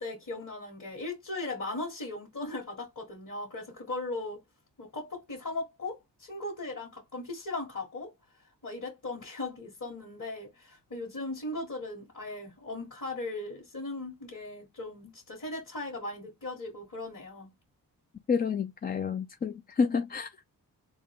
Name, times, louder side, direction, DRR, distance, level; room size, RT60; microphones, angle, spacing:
voice 1, 0.0-4.4 4.8-8.1 8.6-17.5, left 2 dB, 45° left, 1.7 m, -38 dB
voice 2, 18.3-20.3, left 5 dB, 25° left, 0.3 m, -29 dB
3.6 x 2.3 x 3.5 m
supercardioid pair, 40°, 42 cm